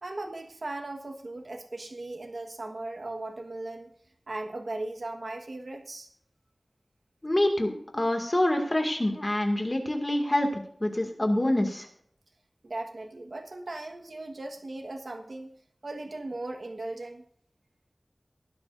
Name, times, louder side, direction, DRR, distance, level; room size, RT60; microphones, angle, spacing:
voice 1, 0.0-3.9 4.3-6.1 12.6-15.5 15.8-17.2, right 2 dB, 75° right, 3 dB, 1.4 m, -38 dB
voice 2, 7.2-11.9, left 1 dB, 30° left, 3 dB, 2.1 m, -26 dB
19.5 x 11.0 x 2.6 m, 0.64 s
wide cardioid pair, 65°, 0 cm